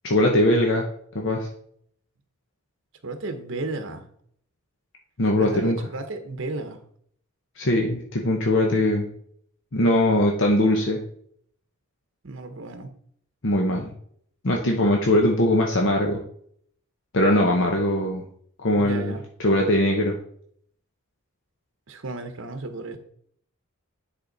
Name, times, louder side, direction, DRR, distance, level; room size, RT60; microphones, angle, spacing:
voice 1, 0.0-0.9 1.1-1.5 5.2-5.8 7.6-9.1 9.7-11.0 13.4-13.9 14.4-16.2 17.1-18.2 18.6-19.1 19.4-20.2, left 1 dB, 60° left, 0 dB, 1.0 m, -21 dB
voice 2, 3.0-4.1 5.2-6.8 12.2-12.9 18.8-19.2 21.9-23.0, right 2 dB, 60° right, 7 dB, 1.0 m, -33 dB
10.0 x 4.4 x 4.0 m, 0.64 s
head